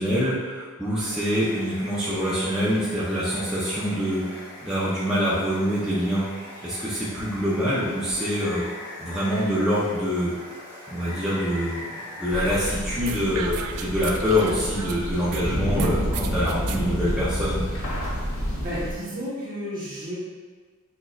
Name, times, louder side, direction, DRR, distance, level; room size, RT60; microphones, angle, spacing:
voice 1, 0.0-6.2 6.6-8.6 9.0-10.3 10.9-11.9 12.2-17.6, equal, 5° right, -10 dB, 0.6 m, -25 dB
Water, 1.1-12.7, left 1 dB, 20° left, 1.0 m, -41 dB
sound 1, 12.3-18.9, equal, 65° left, 0.8 m, -29 dB
sound 2, 13.1-15.4 15.8-16.8, right 8 dB, 85° right, 0.3 m, -36 dB
voice 2, 18.6-20.2, equal, 40° right, -7 dB, 1.0 m, -32 dB
6.1 x 2.6 x 2.4 m, 1.5 s
head